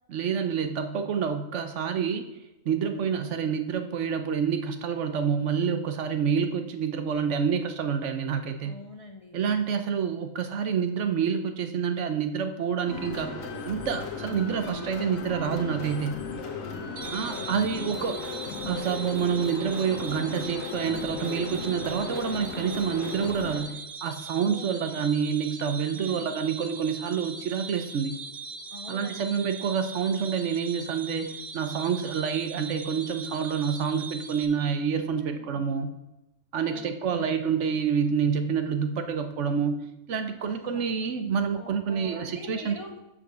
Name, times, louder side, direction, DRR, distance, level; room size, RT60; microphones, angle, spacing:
voice 1, 0.1-2.3 2.7-8.7 9.3-16.2 17.1-18.2 18.7-28.2 28.9-35.9 36.5-42.8, right 7 dB, 65° right, 8 dB, 1.0 m, -28 dB
voice 2, 8.6-9.4 16.8-18.1 24.3-25.1 26.0-26.3 28.7-29.4 35.1-35.6 36.6-37.4 40.4-40.9 41.6-43.0, left 2 dB, 40° left, 2 dB, 0.5 m, -45 dB
sound 1, 12.9-23.6, left 4 dB, 85° left, 1.5 m, -36 dB
sound 2, 17.0-34.5, right 4 dB, 45° right, 0.6 m, -40 dB
6.9 x 5.3 x 6.6 m, 0.96 s
omnidirectional pair, 1.4 m